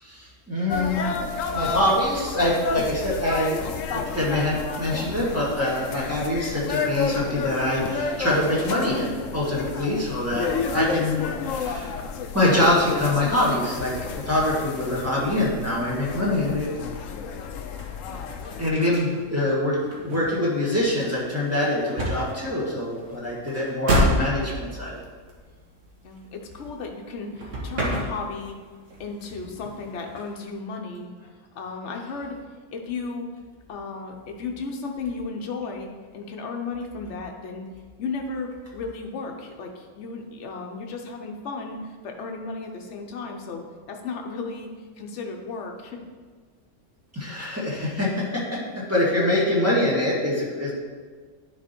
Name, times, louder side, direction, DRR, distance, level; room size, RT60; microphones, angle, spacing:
voice 1, 0.0-1.1 1.5-3.7 3.9-12.0 12.3-13.9 14.3-16.7 18.6-19.8 20.0-25.0 47.1-50.7, left 1 dB, 10° right, -6 dB, 1.8 m, -24 dB
sound 1, 0.7-18.7, left 5 dB, 90° left, 1.0 m, -31 dB
sound 2, 17.8-27.1 27.4-28.6 28.9-30.4, equal, 75° right, 1.7 m, -30 dB
voice 2, 26.0-28.5 29.0-31.1 31.5-32.4 32.7-33.3 33.7-35.9 36.1-37.7 38.0-44.7 45.0-46.0, left 4 dB, 65° left, 2 dB, 1.1 m, -34 dB
10.0 x 4.2 x 4.4 m, 1.5 s
omnidirectional pair, 1.3 m